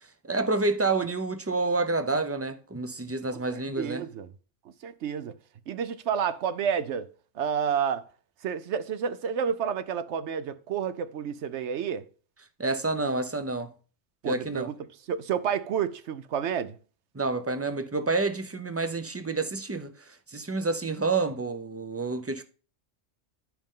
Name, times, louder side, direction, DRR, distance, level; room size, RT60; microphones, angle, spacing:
voice 1, 0.0-4.0 12.6-13.7 14.3-14.7 17.1-19.9 20.3-22.4, right 3 dB, 20° right, 0.4 m, -28 dB
voice 2, 3.3-4.3 4.8-5.4 5.7-8.1 8.4-12.0 14.2-16.8, right 7 dB, 70° right, 0.9 m, -30 dB
11.5 x 5.2 x 3.7 m
omnidirectional pair, 1.3 m